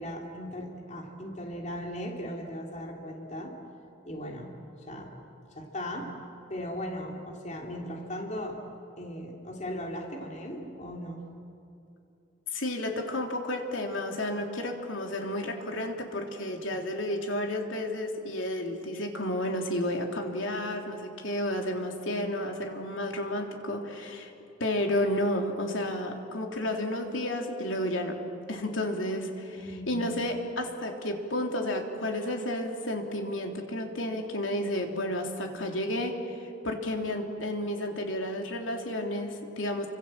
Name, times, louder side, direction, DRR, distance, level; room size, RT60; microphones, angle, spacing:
voice 1, 0.0-3.5 4.0-4.5 4.9-5.1 5.5-6.1 6.5-8.6 9.0-11.2 29.6-30.0, equal, 35° left, 0 dB, 3.1 m, -37 dB
voice 2, 12.5-24.3 24.6-28.2 28.5-39.9, left 1 dB, 75° left, 2 dB, 3.5 m, -31 dB
30.0 x 25.5 x 7.8 m, 2.7 s
head